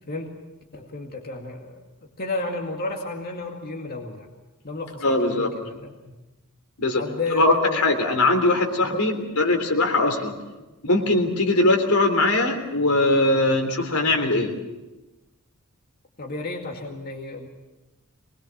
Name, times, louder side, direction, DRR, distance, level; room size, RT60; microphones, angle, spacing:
voice 1, 0.7-1.8 2.2-4.3 4.6-6.2 7.0-7.8 8.8-9.1 16.2-17.5, left 2 dB, 45° left, 1 dB, 2.2 m, -32 dB
voice 2, 5.0-5.5 6.8-7.0 7.3-10.3 10.8-14.5, left 2 dB, 80° left, 4 dB, 3.5 m, -21 dB
24.5 x 20.5 x 7.3 m, 1.1 s
head